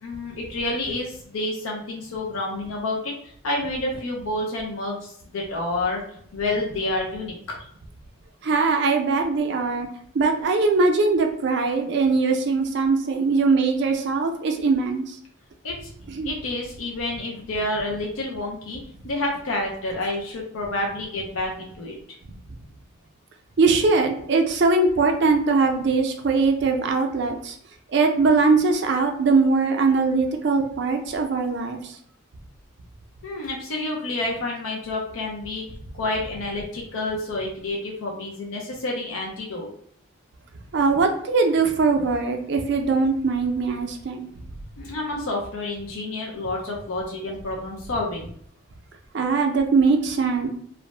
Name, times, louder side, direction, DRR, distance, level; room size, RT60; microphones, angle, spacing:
voice 1, 0.0-6.0 6.3-7.3 15.6-15.9 16.2-22.0 33.2-35.6 35.9-39.7 44.8-48.3, left 2 dB, 80° left, 0 dB, 0.5 m, -29 dB
voice 2, 8.4-9.9 10.1-15.0 16.1-16.3 23.6-27.5 27.9-31.8 40.7-44.3 49.1-50.5, right 4 dB, 55° right, 4 dB, 0.4 m, -21 dB
2.5 x 2.1 x 3.1 m, 0.64 s
head